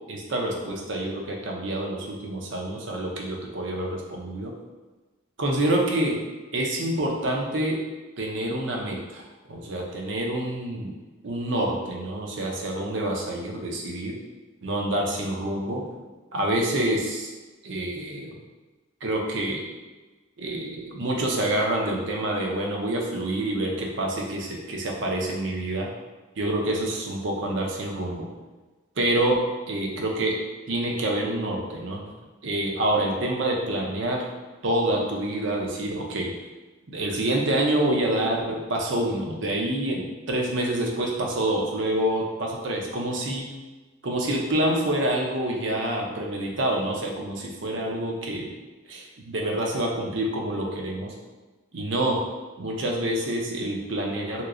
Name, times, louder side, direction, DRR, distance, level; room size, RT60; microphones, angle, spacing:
voice 1, 0.1-4.5 5.4-6.2 6.5-7.8 8.2-10.9 11.2-14.1 14.6-15.8 16.3-17.3 17.6-18.4 19.0-19.6 20.4-25.9 26.4-28.3 29.0-29.4 29.7-30.3 30.7-32.0 32.4-34.2 34.6-36.3 36.9-43.5 44.0-48.5 48.9-51.1 51.7-52.2 52.6-54.5, right 1 dB, 60° right, 0 dB, 0.6 m, -27 dB
3.1 x 3.0 x 2.5 m, 1.2 s
head